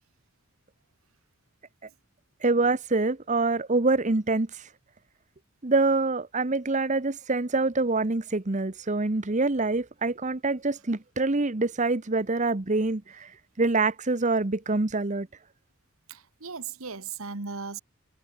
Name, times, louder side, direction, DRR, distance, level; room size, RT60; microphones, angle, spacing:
voice 1, 2.4-4.6 5.6-13.3 13.6-15.3, right 3 dB, 35° right, 1.0 m, -25 dB
voice 2, 16.1-17.8, right 5 dB, 85° right, 1.8 m, -37 dB
head